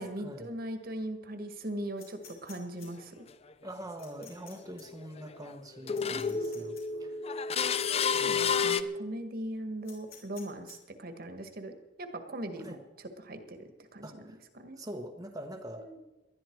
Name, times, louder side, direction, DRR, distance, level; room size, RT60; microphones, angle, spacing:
voice 1, 0.0-3.2 6.1-7.7 8.1-12.8 13.2-14.2 14.5-14.8 15.8-16.0, right 1 dB, 55° right, 7 dB, 1.7 m, -40 dB
sound 1, 2.0-2.9 4.0-4.5 4.8-4.9 5.9-6.8 7.9-8.4 8.7-8.8 9.8-10.7, left 8 dB, 55° left, 5.2 m, -52 dB
sound 2, 2.8-2.9 4.2-4.3 4.7-5.5 5.9-8.8, left 6 dB, 35° left, 0.6 m, -30 dB
voice 2, 3.6-7.1 8.1-8.6 12.6-12.8 14.0-14.4 14.8-16.0, right 1 dB, 20° right, 3 dB, 1.1 m, -44 dB
19.5 x 12.0 x 4.6 m, 1.0 s
head